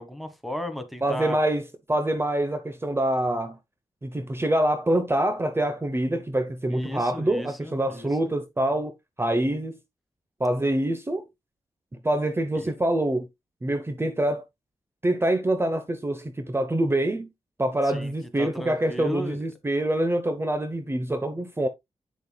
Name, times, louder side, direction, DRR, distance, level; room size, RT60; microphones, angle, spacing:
voice 1, 0.0-1.4 6.7-8.3 12.5-12.7 17.8-18.1 18.4-19.4, equal, ahead, 1.5 m, -35 dB
voice 2, 1.0-3.6 4.0-9.8 10.4-11.3 12.0-13.3 13.6-14.4 15.0-17.3 17.6-21.7, right 1 dB, 20° right, 0.8 m, -25 dB
8.4 x 6.7 x 2.3 m
wide cardioid pair, 95°, 12 cm